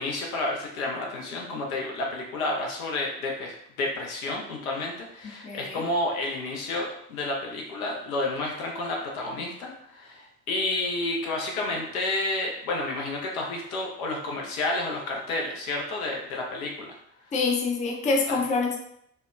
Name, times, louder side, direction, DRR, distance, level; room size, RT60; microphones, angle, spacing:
voice 1, 0.0-16.9, left 2 dB, 80° left, 0 dB, 0.6 m, -30 dB
voice 2, 5.2-5.9 17.3-18.8, left 4 dB, 20° left, 0 dB, 0.4 m, -26 dB
2.7 x 2.1 x 2.2 m, 0.71 s
figure-of-eight pair, 50°, 43 cm